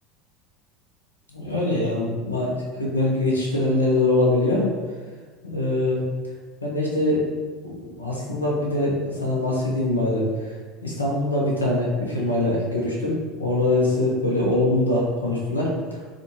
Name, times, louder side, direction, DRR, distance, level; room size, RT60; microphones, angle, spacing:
voice 1, 1.3-2.5 2.8-4.7 5.4-6.0 6.6-7.2 7.6-10.5 10.8-16.0, left 2 dB, 85° left, -3 dB, 0.7 m, -23 dB
3.6 x 2.3 x 2.8 m, 1.4 s
figure-of-eight pair, 70°, 0 cm